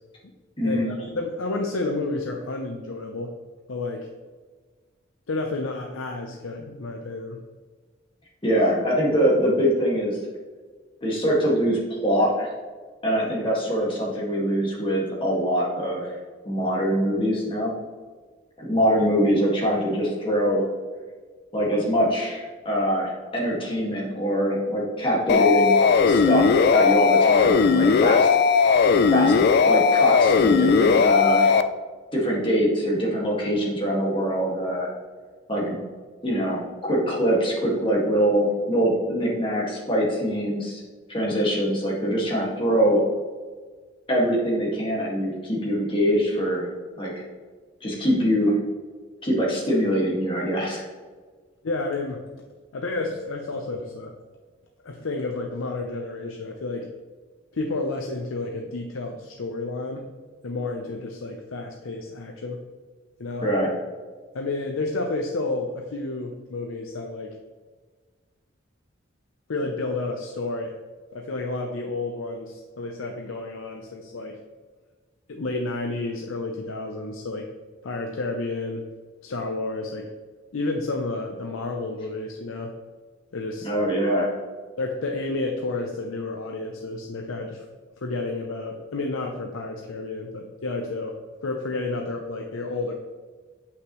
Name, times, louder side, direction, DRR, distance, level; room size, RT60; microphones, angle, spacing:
voice 1, 0.6-3.3 3.7-4.1 5.3-7.4 51.6-52.2 52.7-54.1 54.8-56.9 57.5-60.1 60.4-62.6 63.2-63.5 64.3-67.4 69.5-70.7 71.1-74.4 75.3-77.4 77.8-78.9 79.2-80.1 80.5-82.7 83.3-83.7 84.8-87.7 88.0-91.1 91.4-92.9, left 2 dB, 90° left, 2 dB, 0.6 m, -30 dB
voice 2, 8.4-10.2 11.0-12.5 13.0-16.1 16.4-17.8 18.6-20.7 21.5-25.7 26.0-28.3 29.1-29.3 29.6-31.5 32.1-34.9 35.5-35.8 36.2-40.8 41.1-43.1 44.1-46.7 47.0-47.3 47.8-48.6 49.2-50.8 63.4-63.7 83.6-84.3, equal, 25° left, -4 dB, 1.8 m, -23 dB
sound 1, 25.3-31.6, left 5 dB, 55° left, 0.3 m, -18 dB
8.0 x 5.8 x 3.0 m, 1.5 s
head